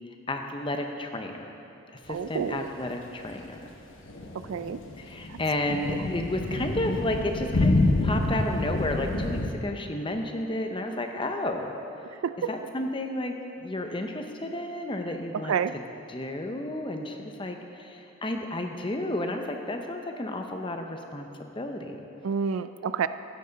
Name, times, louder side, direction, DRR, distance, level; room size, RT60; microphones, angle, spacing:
voice 1, 0.3-1.5 2.0-3.7 5.0-11.7 12.5-15.8 16.1-22.0, left 1 dB, 25° left, 4 dB, 0.7 m, -32 dB
voice 2, 2.1-2.7 4.5-4.8 5.9-6.0 12.2-12.5 15.5-15.7 22.2-23.1, right 6 dB, 75° right, 13 dB, 0.4 m, -28 dB
sound 1, 4.1-9.5, left 2 dB, 60° left, 1.0 m, -27 dB
15.0 x 9.2 x 4.0 m, 2.8 s
head